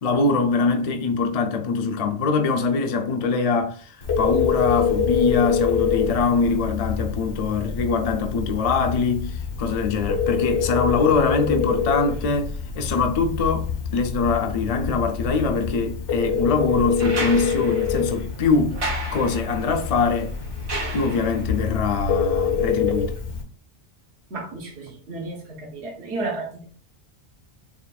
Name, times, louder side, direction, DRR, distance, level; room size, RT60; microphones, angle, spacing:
voice 1, 0.0-18.8 19.1-20.3 20.9-23.2, left 4 dB, 50° left, 0.4 m, -23 dB
Telephone, 4.0-23.4, left 7 dB, 75° left, 1.3 m, -26 dB
sound 1, 17.0-21.6 23.2-23.3, right 2 dB, 85° right, 1.5 m, -33 dB
voice 2, 24.3-26.6, right 2 dB, 70° right, 1.3 m, -32 dB
7.2 x 2.5 x 2.3 m
omnidirectional pair, 1.2 m